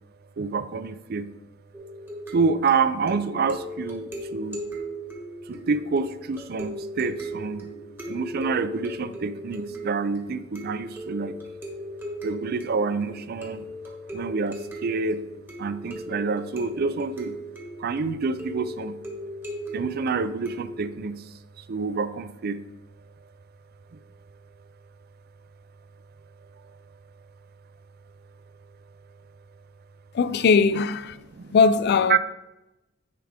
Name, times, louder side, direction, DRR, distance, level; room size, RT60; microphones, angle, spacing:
voice 1, 0.4-1.3 2.3-4.6 5.5-7.7 8.1-11.4 12.2-13.7 14.1-15.2 15.6-17.4 17.8-19.0 19.7-22.6 23.9-24.0 31.3-31.6 32.1-32.2, right 4 dB, 50° right, 0.4 m, -27 dB
sound 1, 1.7-20.9, equal, 10° right, 1.4 m, -38 dB
voice 2, 30.1-31.2 31.5-32.2, left 5 dB, 55° left, 0.4 m, -20 dB
9.7 x 5.0 x 3.5 m
head